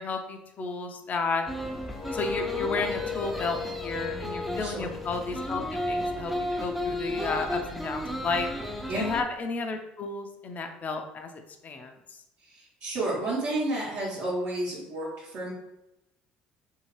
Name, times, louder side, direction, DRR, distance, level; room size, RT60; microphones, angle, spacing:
voice 1, 0.0-1.4 2.1-8.5 8.9-12.2, left 4 dB, 40° left, 5 dB, 0.6 m, -32 dB
sound 1, 1.1-6.1 6.5-6.8, left 5 dB, 85° left, 0.9 m, -37 dB
sound 2, 1.5-9.2, equal, ahead, 0.5 m, -34 dB
voice 2, 4.6-4.9 8.9-9.1 12.4-15.5, right 2 dB, 65° right, -9 dB, 1.1 m, -31 dB
2.8 x 2.7 x 3.1 m, 0.88 s
hypercardioid pair, 70°, 4 cm